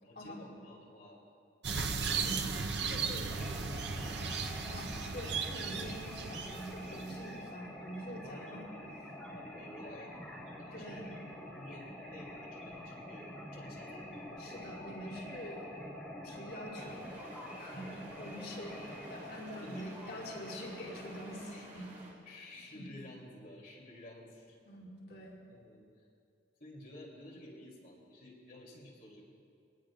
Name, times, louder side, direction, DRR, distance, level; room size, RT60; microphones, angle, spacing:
voice 1, 0.0-1.2 1.6-4.5 8.2-11.1 11.4-14.1 17.7-18.0 19.6-19.9 22.3-24.6 25.5-26.1 26.6-29.3, left 1 dB, 55° left, -3 dB, 3.0 m, -52 dB
sound 1, 1.6-7.4, right 5 dB, 70° right, 0.8 m, -36 dB
voice 2, 2.1-2.4 2.9-3.2 4.7-8.6 10.7-11.1 14.4-15.7 16.2-17.1 17.6-22.2 22.7-22.9 24.6-25.4, equal, 75° left, -5 dB, 4.5 m, -45 dB
sound 2, 3.3-21.4, left 1 dB, ahead, 4.3 m, -47 dB
sound 3, 16.7-22.1, right 1 dB, 45° right, 4.4 m, -53 dB
24.0 x 19.0 x 2.5 m, 2.5 s
head